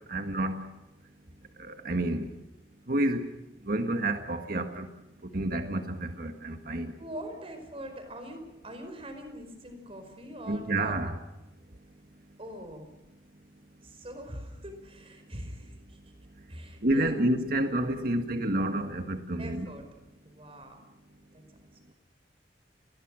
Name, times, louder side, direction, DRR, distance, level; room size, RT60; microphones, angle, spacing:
voice 1, 0.1-0.5 1.6-2.3 2.9-3.2 3.7-4.9 5.3-6.9 10.5-11.1 16.8-19.7, right 1 dB, 55° right, 6 dB, 1.7 m, -29 dB
voice 2, 7.0-11.1 12.4-12.9 13.8-16.1 16.5-17.3 19.4-19.9 20.2-20.8 21.3-21.4, equal, 35° right, 6 dB, 5.0 m, -43 dB
29.5 x 21.0 x 6.3 m, 0.96 s
head